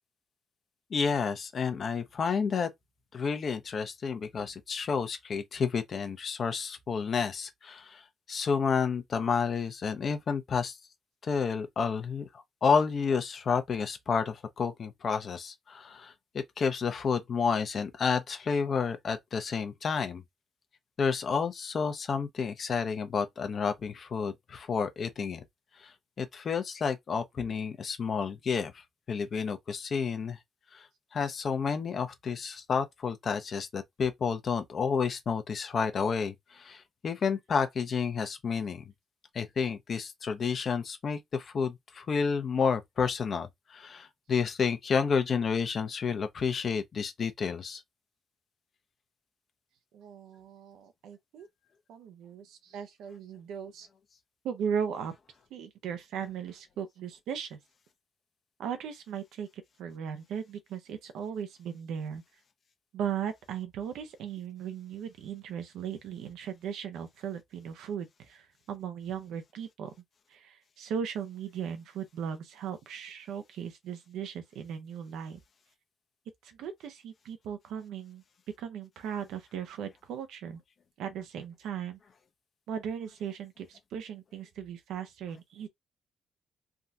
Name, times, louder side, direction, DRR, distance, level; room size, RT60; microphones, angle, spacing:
voice 1, 0.9-2.7 3.1-8.0 8.3-10.8 11.2-12.3 12.6-16.1 16.6-20.2 21.0-25.4 25.8-25.9 26.2-28.7 29.1-30.4 30.7-30.8 31.1-38.8 39.3-47.8, left 6 dB, 50° left, 0.8 m, -30 dB
voice 2, 49.9-51.5 51.9-53.9 54.4-55.2 55.5-57.6 58.6-59.5 59.8-62.2 62.9-69.9 70.3-75.4 76.4-78.2 78.6-80.6 81.0-82.0 82.7-85.7, right 8 dB, 85° right, 0.8 m, -37 dB
3.5 x 2.4 x 2.8 m
cardioid pair, 90°, 0 cm